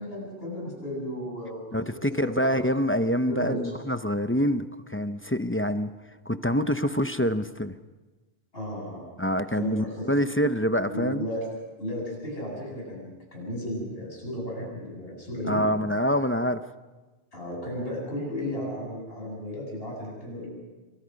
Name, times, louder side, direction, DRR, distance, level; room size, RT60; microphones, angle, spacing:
voice 1, 0.0-2.6 3.3-3.7 8.5-9.1 9.5-10.1 10.9-11.4 11.8-15.6 17.3-20.5, equal, 70° left, -2 dB, 8.4 m, -34 dB
voice 2, 1.7-5.9 6.3-7.8 9.2-11.2 15.5-16.6, equal, 15° left, 10 dB, 0.7 m, -26 dB
28.5 x 24.0 x 5.3 m, 1.2 s
omnidirectional pair, 1.0 m